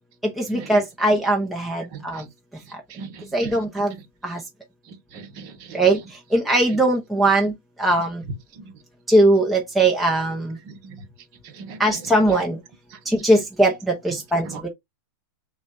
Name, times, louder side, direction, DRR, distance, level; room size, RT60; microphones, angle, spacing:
voice 1, 0.4-2.2 3.3-3.9 4.2-4.4 5.7-6.0 6.3-7.5 7.8-8.2 9.1-10.6 11.8-12.6 13.1-14.7, right 1 dB, ahead, 0.6 m, -20 dB
voice 2, 3.0-3.5 5.1-5.8 10.7-11.0 11.6-11.8 14.5-14.6, right 5 dB, 35° right, 0.9 m, -38 dB
6.0 x 2.2 x 2.5 m
hypercardioid pair, 155°, 11 cm